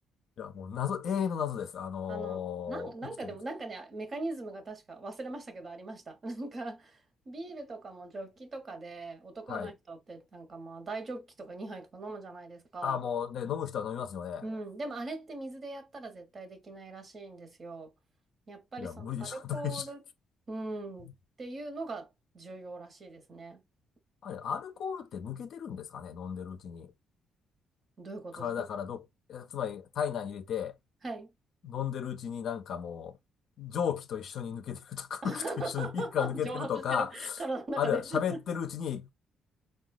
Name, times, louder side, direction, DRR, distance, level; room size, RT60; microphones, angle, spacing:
voice 1, 0.4-3.3 9.5-9.7 12.8-14.4 18.8-19.9 24.2-26.9 28.3-30.8 31.6-33.2 33.6-37.4 37.8-39.1, left 8 dB, 70° left, 0.4 m, -34 dB
voice 2, 2.1-7.0 7.3-13.0 14.4-17.9 18.5-20.0 20.5-21.1 21.4-22.1 22.3-23.6 28.0-28.6 31.0-31.3 35.2-38.4, right 2 dB, 40° right, 0.9 m, -40 dB
3.8 x 2.2 x 2.3 m
cardioid pair, 90°, 0 cm